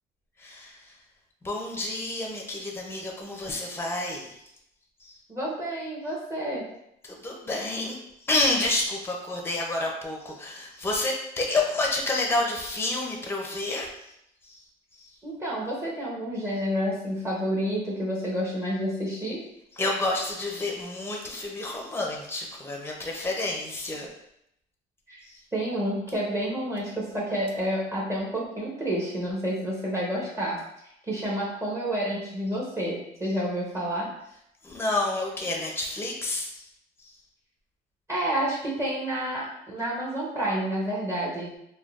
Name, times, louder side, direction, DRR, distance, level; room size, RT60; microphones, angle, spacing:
voice 1, 0.4-0.9 1.4-4.3 5.0-5.1 7.0-8.0 8.2-13.9 14.4-14.6 14.9-15.1 19.8-24.1 25.3-25.4 34.6-36.6, left 2 dB, 15° left, 0 dB, 0.6 m, -29 dB
voice 2, 5.3-6.7 15.2-19.4 25.1-25.2 25.5-30.6 31.1-34.1 38.1-41.5, equal, 15° right, -5 dB, 0.8 m, -29 dB
3.6 x 2.2 x 2.4 m, 0.77 s
cardioid pair, 110°, 17 cm